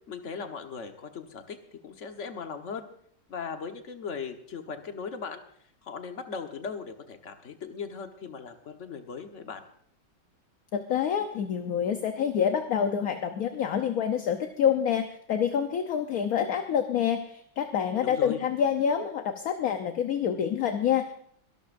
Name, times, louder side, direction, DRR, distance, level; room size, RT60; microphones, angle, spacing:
voice 1, 0.1-1.6 1.8-2.9 3.3-5.4 5.8-9.6 18.0-18.4, left 6 dB, 40° left, 5 dB, 1.4 m, -38 dB
voice 2, 10.7-21.1, left 8 dB, 60° left, 6 dB, 1.1 m, -27 dB
24.0 x 12.5 x 2.6 m, 0.64 s
omnidirectional pair, 2.2 m